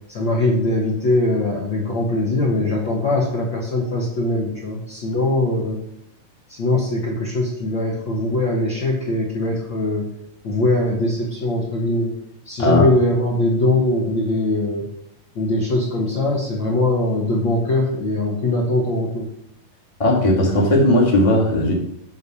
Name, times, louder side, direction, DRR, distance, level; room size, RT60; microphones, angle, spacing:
voice 1, 0.1-5.8 6.5-10.0 10.4-12.1 12.4-14.8 15.3-19.3, left 2 dB, 50° left, -3 dB, 1.5 m, -21 dB
voice 2, 20.0-21.7, left 1 dB, 15° left, -3 dB, 1.4 m, -16 dB
9.4 x 3.5 x 6.8 m, 0.80 s
omnidirectional pair, 3.8 m